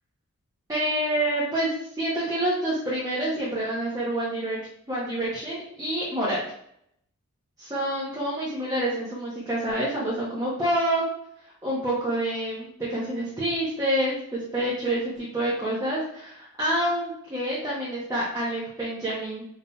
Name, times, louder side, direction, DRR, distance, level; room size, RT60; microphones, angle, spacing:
voice 1, 0.7-4.6 4.9-6.4 7.6-11.0 11.6-19.5, right 1 dB, 15° right, -8 dB, 0.8 m, -27 dB
5.3 x 2.8 x 2.2 m, 0.71 s
head